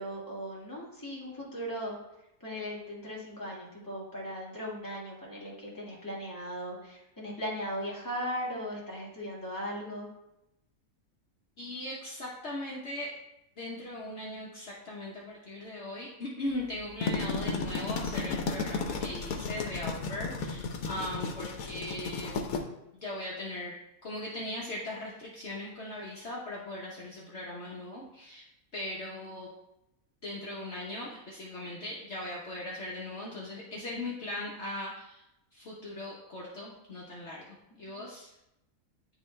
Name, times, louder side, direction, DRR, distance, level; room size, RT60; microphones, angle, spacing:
voice 1, 0.0-2.0 2.4-10.1 37.9-38.0, equal, 15° left, -5 dB, 1.7 m, -38 dB
voice 2, 11.6-13.2 13.6-22.4 23.0-28.5 28.7-29.5 30.2-35.2 35.5-38.3, left 1 dB, 55° left, -5 dB, 1.2 m, -39 dB
sound 1, 16.8-22.6, left 4 dB, 80° left, 1.2 m, -34 dB
9.8 x 3.3 x 3.2 m, 0.87 s
omnidirectional pair, 1.5 m